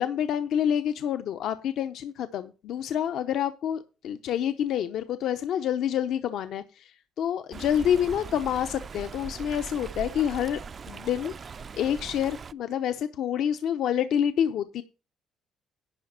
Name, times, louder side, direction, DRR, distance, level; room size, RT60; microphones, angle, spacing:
voice 1, 0.0-10.6 10.9-11.3 11.7-14.8, left 9 dB, 75° left, 9 dB, 0.7 m, -28 dB
Stream, 7.5-12.5, right 5 dB, 40° right, 0.4 m, -40 dB
11.0 x 5.3 x 7.4 m, 0.32 s
cardioid pair, 100°, 0 cm